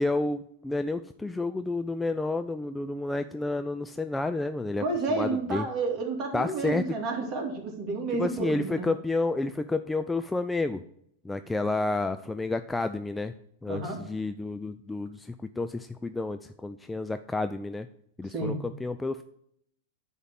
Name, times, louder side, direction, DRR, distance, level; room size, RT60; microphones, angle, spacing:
voice 1, 0.0-5.7 6.3-6.8 8.1-10.8 11.2-13.3 13.6-17.9 18.2-19.2, left 2 dB, 10° left, 9 dB, 0.3 m, -30 dB
voice 2, 4.8-8.9 13.7-14.0 18.3-18.6, right 3 dB, 35° right, 1 dB, 2.5 m, -30 dB
9.9 x 3.6 x 7.0 m, 0.72 s
figure-of-eight pair, 95°, 0 cm